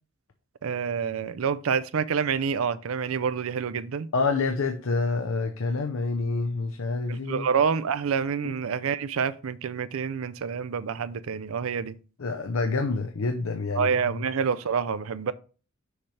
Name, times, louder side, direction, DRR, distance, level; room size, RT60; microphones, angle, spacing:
voice 1, 0.6-4.1 7.1-12.0 13.8-15.3, right 6 dB, 90° right, 0.5 m, -27 dB
voice 2, 4.1-7.5 8.4-8.5 12.2-14.2, left 3 dB, 85° left, 0.6 m, -27 dB
6.5 x 3.3 x 5.7 m
head